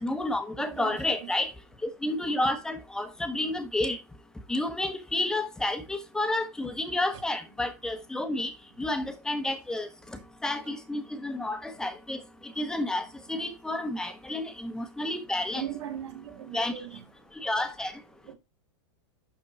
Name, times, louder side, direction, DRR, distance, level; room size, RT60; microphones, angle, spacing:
voice 1, 0.0-1.5 1.8-4.0 4.5-8.5 8.8-9.9 10.4-12.2 12.6-15.6 16.5-16.8 17.4-17.9, left 1 dB, 5° left, 1.2 m, -30 dB
voice 2, 0.6-1.3 15.5-16.9 18.3-18.4, right 10 dB, 70° right, 4.1 m, -38 dB
11.5 x 4.3 x 4.3 m
supercardioid pair, 155°, 15 cm